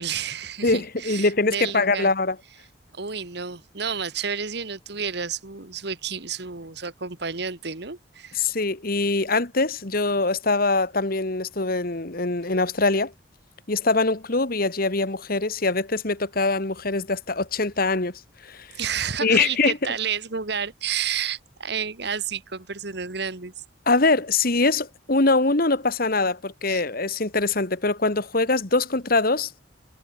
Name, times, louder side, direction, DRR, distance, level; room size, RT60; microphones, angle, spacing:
voice 1, 0.0-2.1 2.9-8.5 18.8-23.6 26.7-26.8, right 7 dB, 60° right, 1.8 m, -31 dB
voice 2, 0.6-2.4 8.4-13.1 13.7-18.7 19.2-19.8 23.9-29.5, left 3 dB, 50° left, 1.8 m, -23 dB
head